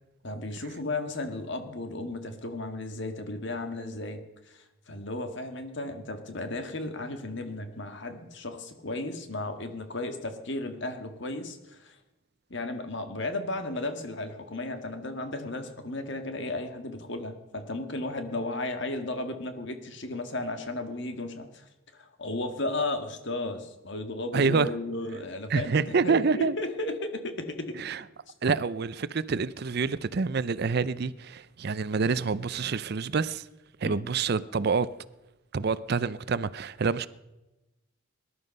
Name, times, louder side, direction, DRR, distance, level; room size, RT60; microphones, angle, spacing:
voice 1, 0.2-12.0 12.5-27.8 33.8-34.1, left 2 dB, 55° left, 1.7 m, -34 dB
voice 2, 24.3-24.7 25.5-26.6 27.8-28.0 28.4-33.5 33.8-34.9 35.5-37.1, right 5 dB, 50° right, 0.5 m, -27 dB
19.5 x 11.5 x 5.4 m
head